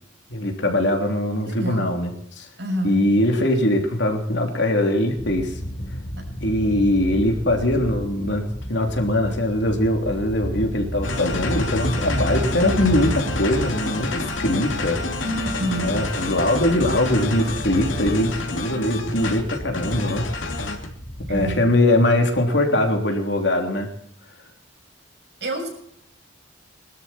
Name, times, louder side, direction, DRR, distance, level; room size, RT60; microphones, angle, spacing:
voice 1, 0.3-2.5 2.8-5.6 6.4-15.0 15.8-20.3 21.3-23.9, left 1 dB, 65° left, 3 dB, 3.4 m, -21 dB
voice 2, 1.4-1.9 2.6-2.9 6.2-6.3 15.2-15.9 21.3-21.6 25.4-25.7, right 1 dB, 60° right, 2 dB, 6.6 m, -27 dB
sound 1, 5.2-21.6, equal, 35° left, 4.6 m, -32 dB
sound 2, 11.0-20.9, left 3 dB, 80° left, 2.8 m, -29 dB
22.0 x 13.0 x 4.5 m, 0.67 s
head